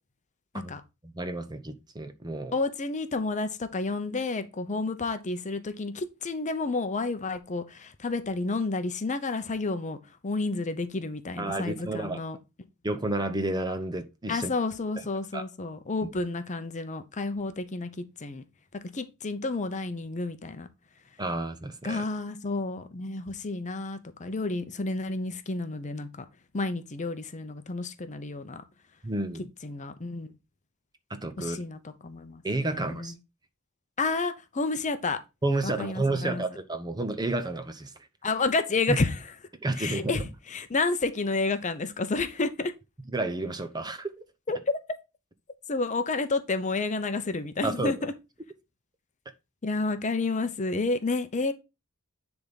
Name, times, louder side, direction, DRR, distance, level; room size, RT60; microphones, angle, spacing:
voice 1, 1.0-2.5 11.4-12.2 12.8-14.5 15.3-15.4 21.2-22.0 29.0-29.4 31.1-31.6 32.4-33.1 35.4-37.9 38.9-39.0 39.6-40.2 43.1-44.1 47.6-47.9, right 2 dB, 20° right, 0.8 m, -31 dB
voice 2, 2.5-10.0 10.2-12.4 14.3-18.4 18.9-20.7 21.8-26.2 26.5-28.6 29.6-30.3 31.4-32.4 32.7-33.1 34.0-35.2 35.6-36.4 38.2-39.2 39.8-42.7 44.5-44.8 45.7-48.1 49.6-51.5, left 3 dB, 35° left, 0.7 m, -30 dB
10.0 x 3.5 x 4.1 m
head